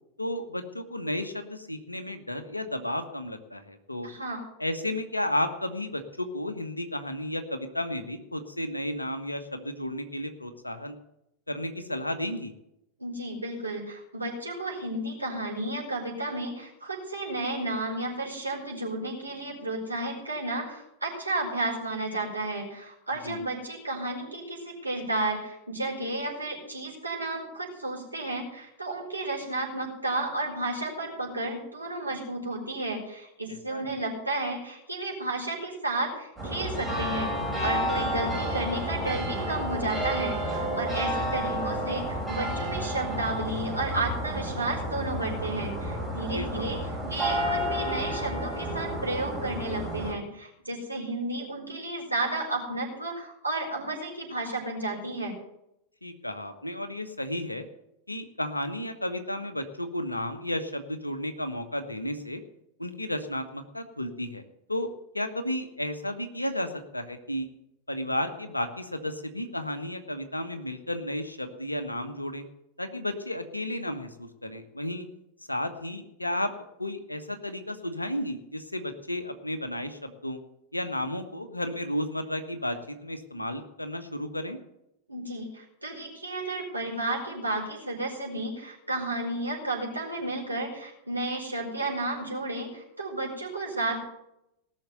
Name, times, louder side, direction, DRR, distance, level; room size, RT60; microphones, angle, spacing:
voice 1, 0.2-4.1 4.6-10.9 11.5-12.5 23.2-23.4 33.5-34.0 46.3-46.8 56.0-57.7 58.1-62.4 62.8-64.4 64.7-67.5 67.9-72.4 72.8-75.1 75.5-76.5 76.8-80.4 80.7-84.6, left 1 dB, 85° left, 8 dB, 1.4 m, -33 dB
voice 2, 4.0-4.4 13.0-55.3 85.1-94.0, right 2 dB, 80° right, -2 dB, 4.8 m, -32 dB
sound 1, 36.4-50.1, equal, 5° right, 5.7 m, -31 dB
18.5 x 6.6 x 8.0 m, 0.82 s
figure-of-eight pair, 90°, 0 cm